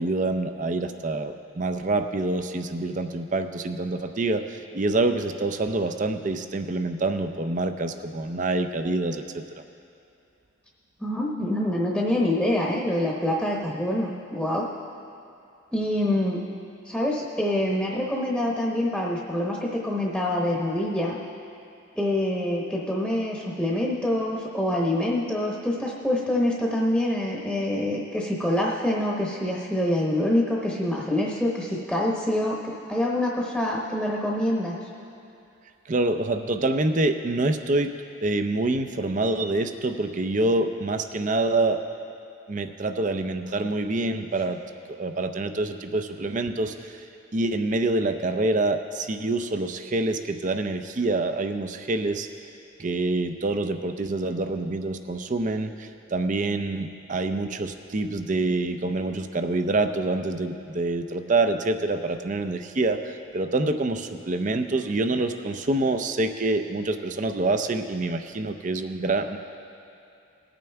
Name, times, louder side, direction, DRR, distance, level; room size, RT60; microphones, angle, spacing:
voice 1, 0.0-9.4 35.9-37.9 38.2-41.8 42.5-44.6 45.0-47.0 47.3-52.3 52.8-69.4, right 2 dB, 40° right, 8 dB, 0.5 m, -26 dB
voice 2, 11.0-14.7 15.7-16.4 16.8-21.2 21.9-34.8, left 1 dB, ahead, -3 dB, 0.9 m, -26 dB
20.0 x 8.9 x 3.4 m, 2.6 s
head